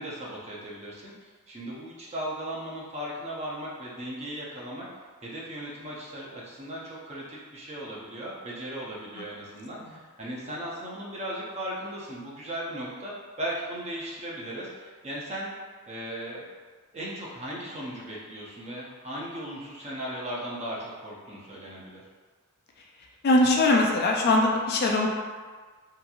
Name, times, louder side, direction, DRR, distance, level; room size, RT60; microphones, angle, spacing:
voice 1, 0.0-4.9 5.2-13.1 13.4-15.6 15.9-16.4 16.9-22.0, right 1 dB, 30° right, -5 dB, 0.6 m, -37 dB
voice 2, 23.2-25.1, left 2 dB, 45° left, 0 dB, 0.3 m, -21 dB
2.9 x 2.6 x 2.3 m, 1.5 s
head